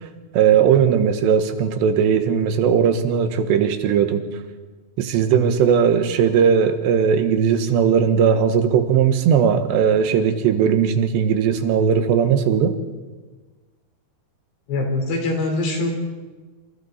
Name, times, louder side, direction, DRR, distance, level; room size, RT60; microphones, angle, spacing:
voice 1, 0.3-4.2 5.0-12.8, right 7 dB, 80° right, 7 dB, 3.6 m, -18 dB
voice 2, 14.7-15.9, left 2 dB, 75° left, 2 dB, 6.2 m, -23 dB
27.5 x 27.5 x 4.3 m, 1.3 s
omnidirectional pair, 4.9 m